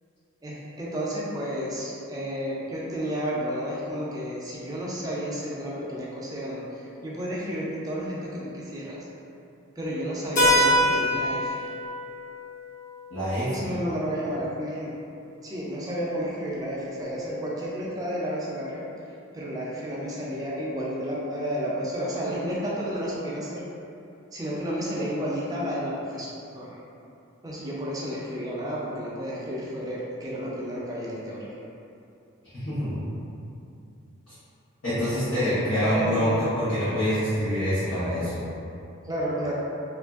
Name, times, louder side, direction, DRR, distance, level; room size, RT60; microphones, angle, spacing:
voice 1, 0.4-9.0 9.8-11.6 13.5-14.9 15.4-18.8 19.3-23.6 24.3-26.7 27.4-31.5 35.9-36.4 39.0-39.5, equal, 15° right, -6 dB, 0.3 m, -31 dB
Keyboard (musical), 10.4-14.8, equal, 40° left, 0.6 m, -26 dB
voice 2, 13.1-13.7 32.5-33.0 34.3-34.4 34.8-38.4, equal, 70° left, -17 dB, 1.0 m, -26 dB
2.9 x 2.5 x 2.3 m, 2.6 s
head